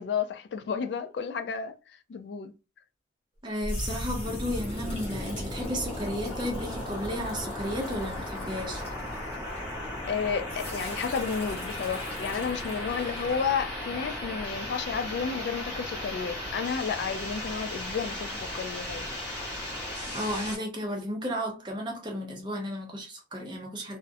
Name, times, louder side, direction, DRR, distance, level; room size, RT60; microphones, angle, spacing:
voice 1, 0.0-2.5 10.1-19.1, left 6 dB, 70° left, 0.3 m, -32 dB
sound 1, 3.4-10.1 10.5-13.5, left 1 dB, 35° left, 0.9 m, -45 dB
voice 2, 3.4-8.8 20.1-24.0, equal, 25° right, 0.6 m, -33 dB
sound 2, 3.6-20.6, left 1 dB, 10° left, 1.1 m, -36 dB
2.4 x 2.0 x 2.5 m
head